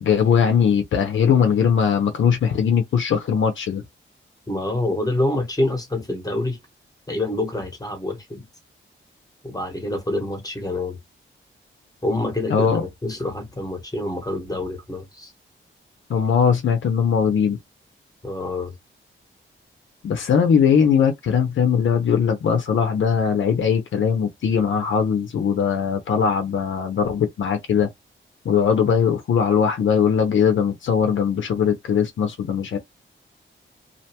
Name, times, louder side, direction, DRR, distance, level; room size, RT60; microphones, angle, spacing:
voice 1, 0.0-3.8 12.5-12.8 16.1-17.6 20.0-27.9 28.4-32.8, left 7 dB, 70° left, 0.6 m, -20 dB
voice 2, 4.5-6.6 7.1-8.4 9.4-11.0 12.0-15.3 18.2-18.7, left 2 dB, 20° left, 1.0 m, -26 dB
2.5 x 2.2 x 2.8 m
wide cardioid pair, 120°, 21 cm